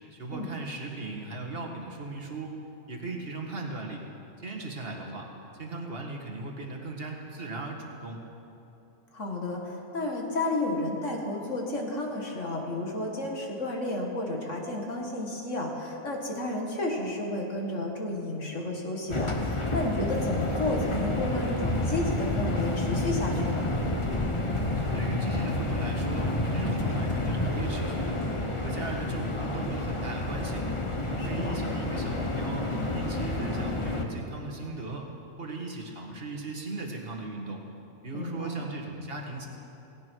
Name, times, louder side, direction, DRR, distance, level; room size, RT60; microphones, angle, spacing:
voice 1, 0.1-2.5 2.9-4.0 4.4-5.3 5.6-8.3 24.9-28.2 28.6-30.7 31.0-35.1 35.4-37.6 38.0-39.5, right 3 dB, 40° right, 0 dB, 2.0 m, -38 dB
voice 2, 9.1-23.7 31.2-31.6 38.1-38.7, left 2 dB, 55° left, 0 dB, 2.2 m, -32 dB
sound 1, 19.1-34.0, left 2 dB, 20° left, 1.1 m, -29 dB
17.5 x 17.0 x 4.7 m, 2.9 s
omnidirectional pair, 1.6 m